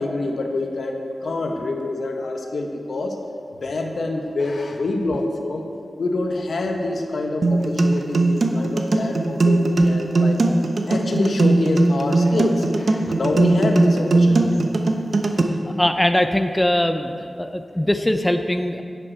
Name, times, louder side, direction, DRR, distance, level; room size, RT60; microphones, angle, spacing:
voice 1, 0.0-3.2 3.6-5.7 6.0-10.4 10.9-14.6, left 2 dB, 75° left, 3 dB, 1.1 m, -26 dB
sound 1, 7.4-15.4, right 2 dB, 60° right, 0.8 m, -19 dB
voice 2, 15.6-17.1 17.4-18.8, left 1 dB, 10° left, 7 dB, 0.5 m, -21 dB
10.5 x 9.3 x 4.6 m, 2.3 s
wide cardioid pair, 100°, 0 cm